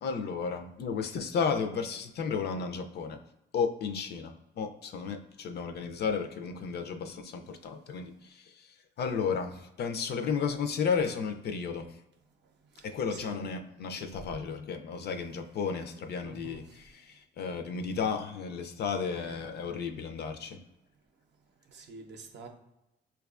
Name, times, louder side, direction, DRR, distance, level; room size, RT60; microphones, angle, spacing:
voice 1, 0.0-3.2 3.5-12.0 12.8-20.6, left 5 dB, 55° left, 6 dB, 0.4 m, -33 dB
voice 2, 13.1-13.5 16.2-16.6 19.2-19.4 21.7-22.5, right 3 dB, 60° right, 4 dB, 0.6 m, -47 dB
4.6 x 2.3 x 2.4 m, 0.88 s
cardioid pair, 90°, 20 cm